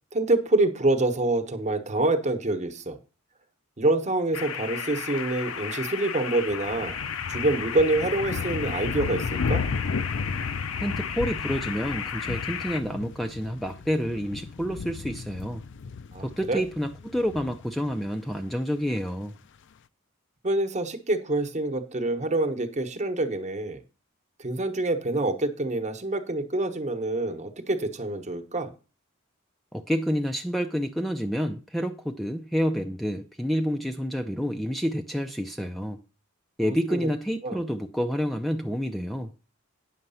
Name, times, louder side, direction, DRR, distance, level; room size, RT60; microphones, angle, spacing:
voice 1, 0.1-3.0 3.8-6.9 7.3-9.6 16.1-16.6 20.4-23.8 24.4-28.7 36.9-37.0 37.4-37.6, right 2 dB, 35° right, 1.1 m, -26 dB
sound 1, 4.3-12.8, left 7 dB, 85° left, 0.8 m, -34 dB
sound 2, 6.5-18.3, left 5 dB, 60° left, 0.5 m, -34 dB
voice 2, 10.8-15.6 16.2-19.4 29.7-36.0 36.6-39.3, equal, ahead, 0.5 m, -29 dB
9.4 x 6.6 x 5.6 m
head